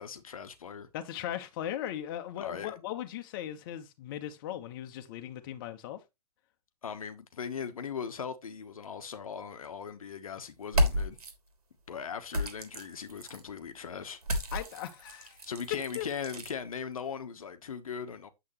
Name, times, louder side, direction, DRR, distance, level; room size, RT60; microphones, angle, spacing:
voice 1, 0.0-0.9 2.4-2.8 6.8-11.2 11.9-14.2 15.5-18.3, left 7 dB, 60° left, 1.3 m, -39 dB
voice 2, 0.9-6.0 14.5-15.4 15.9-16.1, left 11 dB, 35° left, 1.3 m, -38 dB
sound 1, 10.6-11.3 12.3-13.4 14.2-16.5, equal, 70° right, 3.2 m, -32 dB
8.7 x 7.7 x 3.1 m
figure-of-eight pair, 125°, 20 cm